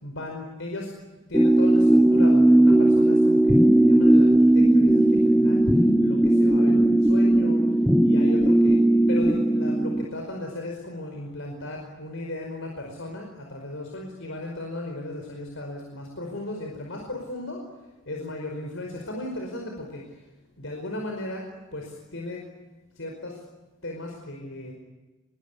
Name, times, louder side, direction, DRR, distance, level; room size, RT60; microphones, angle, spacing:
voice 1, 0.0-0.9 1.3-17.7 18.0-20.2 20.6-22.5 22.9-23.4 23.8-24.7, left 1 dB, 60° left, 1 dB, 5.1 m, -36 dB
sound 1, 1.3-10.0, right 1 dB, ahead, 1.0 m, -18 dB
25.5 x 22.5 x 9.9 m, 1.2 s
head